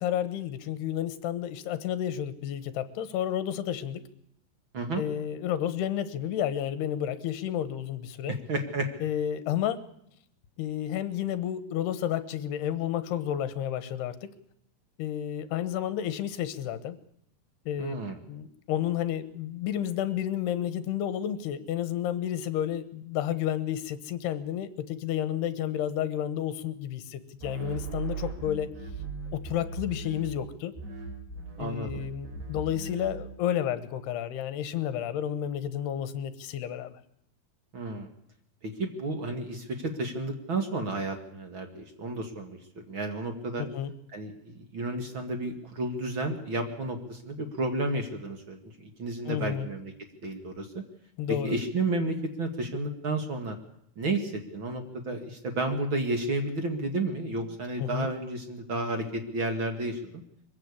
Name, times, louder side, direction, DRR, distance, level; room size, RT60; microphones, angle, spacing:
voice 1, 0.0-4.0 5.0-8.3 9.0-9.8 10.6-14.3 15.0-17.0 17.7-17.9 18.3-28.7 29.3-30.7 31.6-37.0 43.6-43.9 49.3-49.7 51.2-51.6 57.8-58.1, left 10 dB, 75° left, 14 dB, 3.1 m, -31 dB
voice 2, 8.3-8.9 17.8-18.2 31.6-32.0 37.7-38.1 38.6-43.6 44.1-49.9 50.2-50.8 51.3-53.6 54.0-60.2, right 2 dB, 45° right, 5 dB, 1.7 m, -32 dB
sound 1, 27.4-30.5 30.8-33.3, right 4 dB, 80° right, 7.0 m, -38 dB
23.0 x 15.0 x 8.4 m, 0.74 s
omnidirectional pair, 4.7 m